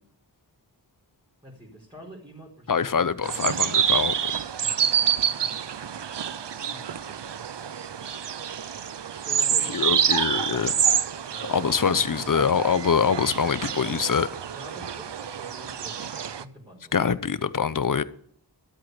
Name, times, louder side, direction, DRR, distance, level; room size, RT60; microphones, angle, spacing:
voice 1, 1.4-3.7 6.6-8.0 9.2-10.6 11.3-12.6 14.5-16.9, equal, 10° right, 5.2 m, -47 dB
voice 2, 2.7-4.2 9.7-10.7 11.5-14.3 16.9-18.0, left 6 dB, 45° left, 0.8 m, -24 dB
sound 1, 3.2-16.4, right 8 dB, 70° right, 0.7 m, -27 dB
13.0 x 8.0 x 8.1 m
wide cardioid pair, 55°, 44 cm